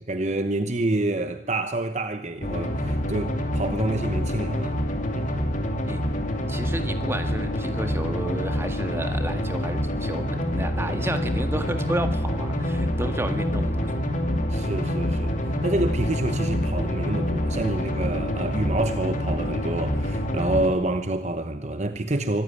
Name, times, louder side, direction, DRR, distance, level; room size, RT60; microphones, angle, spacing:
voice 1, 0.1-4.8 5.1-5.3 14.5-15.4 15.6-22.4, right 2 dB, 35° right, 1.0 m, -27 dB
sound 1, 2.4-20.7, equal, 40° left, 2.6 m, -26 dB
voice 2, 5.9-6.2 6.5-14.0, right 1 dB, 15° right, 1.7 m, -32 dB
24.5 x 14.5 x 9.7 m
head